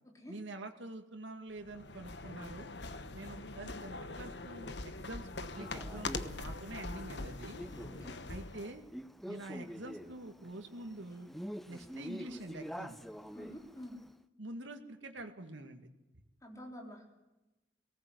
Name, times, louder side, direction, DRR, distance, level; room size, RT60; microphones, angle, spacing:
voice 1, 0.3-2.7 3.1-7.6 8.3-8.8 9.3-11.3 11.7-13.0 14.4-15.9, right 1 dB, 85° right, 5 dB, 2.0 m, -46 dB
sound 1, 1.6-8.8, left 3 dB, 65° left, 1.1 m, -43 dB
Male speech man speaking, 5.5-14.1, equal, ahead, 0.6 m, -47 dB
voice 2, 13.3-14.0 16.4-17.1, equal, 15° left, 1 dB, 3.8 m, -48 dB
19.0 x 18.0 x 8.0 m, 1.0 s
head